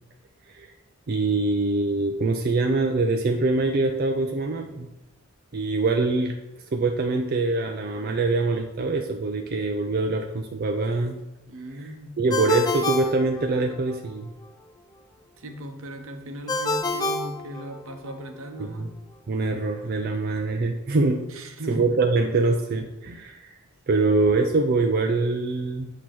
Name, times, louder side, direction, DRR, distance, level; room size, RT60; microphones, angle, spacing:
voice 1, 1.1-4.9 5.5-6.3 6.7-11.2 11.8-11.9 12.2-14.3 18.6-18.9 19.3-21.2 21.7-23.5 23.9-25.9, right 3 dB, 45° right, 3 dB, 0.4 m, -24 dB
voice 2, 11.5-12.2 15.4-18.9 21.3-21.9, right 1 dB, 75° right, 6 dB, 0.8 m, -37 dB
Ringtone, 12.3-14.0 16.5-18.1, left 2 dB, 20° left, 0.4 m, -28 dB
8.2 x 2.9 x 6.0 m, 0.97 s
head